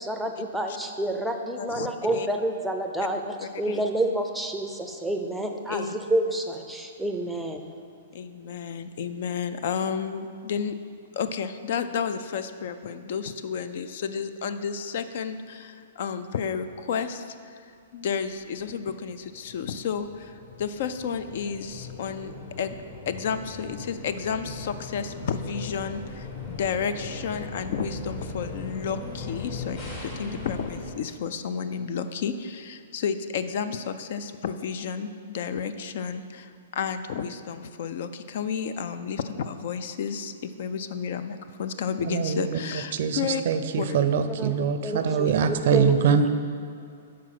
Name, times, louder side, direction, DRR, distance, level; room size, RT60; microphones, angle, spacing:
voice 1, 0.0-7.6 44.3-46.3, right 1 dB, ahead, 3 dB, 0.5 m, -29 dB
voice 2, 1.6-2.3 3.4-3.8 5.7-6.1 8.1-10.8 11.1-22.8 23.1-43.4 43.8-44.0, left 6 dB, 60° left, 10 dB, 0.4 m, -32 dB
sound 1, 18.7-30.9, left 3 dB, 40° left, 1.3 m, -39 dB
voice 3, 42.1-43.2 43.5-46.3, right 7 dB, 60° right, 9 dB, 0.5 m, -24 dB
6.0 x 4.7 x 5.9 m, 2.4 s
hypercardioid pair, 140°, 0 cm